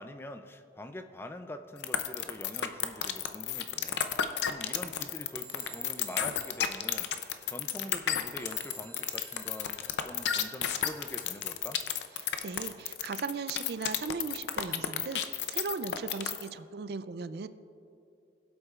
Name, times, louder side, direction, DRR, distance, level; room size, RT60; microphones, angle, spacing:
voice 1, 0.0-4.0 4.4-11.8, left 1 dB, 15° left, 8 dB, 0.4 m, -44 dB
sound 1, 1.8-16.5, left 9 dB, 80° left, 0.5 m, -31 dB
sound 2, 4.3-12.3, right 3 dB, 10° right, 2.6 m, -55 dB
voice 2, 12.2-17.5, right 4 dB, 60° right, 13 dB, 0.4 m, -38 dB
21.5 x 7.9 x 2.4 m, 2.7 s
head